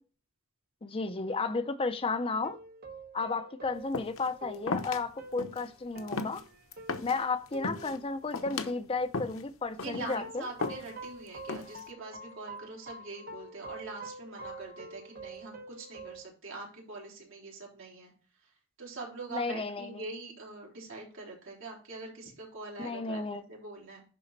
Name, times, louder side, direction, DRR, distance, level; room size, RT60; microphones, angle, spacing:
voice 1, 0.8-2.6 3.1-6.4 7.0-10.5 19.3-20.0 22.8-23.4, left 3 dB, 25° left, 0.5 m, -33 dB
sound 1, 2.4-9.1 10.2-16.2, right 2 dB, 50° right, 1.0 m, -47 dB
sound 2, 3.9-4.3 4.7-5.0 5.4-5.7 6.0-7.2 7.5-8.0 8.3-8.7 9.1-9.4 9.8-10.2 10.6-11.1 11.5-11.9, left 3 dB, 75° left, 0.9 m, -35 dB
voice 2, 9.7-18.1 18.4-18.5 18.8-24.0, right 3 dB, 65° right, 3.6 m, -44 dB
11.0 x 4.1 x 4.0 m
head